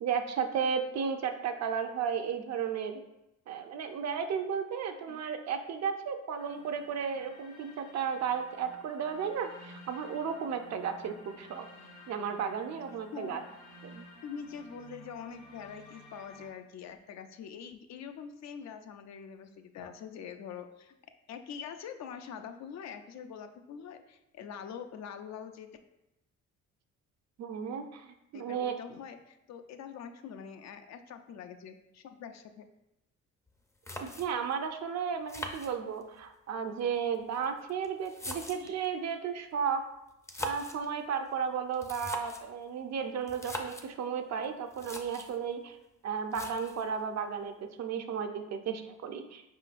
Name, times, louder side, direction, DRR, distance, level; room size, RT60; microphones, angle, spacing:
voice 1, 0.0-3.0 3.5-11.6 12.1-13.4 13.8-14.1 27.4-28.7 34.0-39.8 40.4-45.8 46.0-49.4, right 7 dB, 60° right, 6 dB, 0.6 m, -34 dB
sound 1, 6.3-16.5, left 1 dB, 80° left, 1.2 m, -53 dB
voice 2, 14.2-21.0 21.3-25.7 28.3-32.6 38.6-38.7, left 7 dB, 60° left, 8 dB, 0.5 m, -44 dB
sound 2, 33.5-33.6 33.8-34.5 35.3-36.2 37.1-38.8 40.1-40.9 41.7-42.5 43.3-43.9 44.4-44.5 44.7-45.4 46.3-46.9, left 1 dB, 10° left, 0.5 m, -41 dB
5.1 x 3.7 x 2.5 m, 0.89 s
cardioid pair, 90°, 30 cm